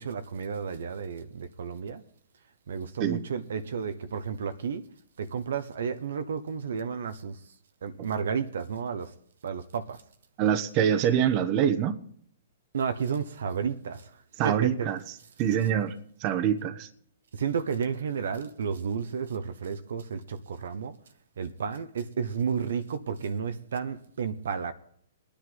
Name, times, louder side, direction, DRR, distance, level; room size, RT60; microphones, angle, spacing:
voice 1, 0.0-2.0 2.7-4.9 5.2-7.4 7.8-9.1 9.4-10.0 12.7-14.2 14.4-14.9 17.3-20.9 21.4-24.7, right 6 dB, 75° right, 1.1 m, -32 dB
voice 2, 10.4-12.0 14.4-15.0 15.4-16.9, right 9 dB, 40° right, 1.2 m, -25 dB
20.5 x 10.0 x 4.0 m
hypercardioid pair, 125°, 0 cm